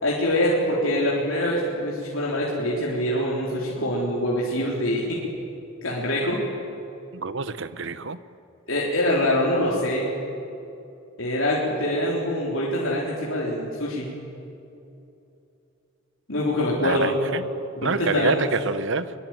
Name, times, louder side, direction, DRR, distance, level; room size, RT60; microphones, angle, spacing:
voice 1, 0.0-5.2 5.8-6.4 8.7-10.1 11.2-14.1 16.3-17.2 17.8-18.5, left 1 dB, 60° left, -5 dB, 4.0 m, -24 dB
voice 2, 7.1-8.2 16.8-17.5 17.8-19.1, right 4 dB, 60° right, 14 dB, 0.9 m, -27 dB
23.5 x 22.5 x 9.2 m, 2.7 s
head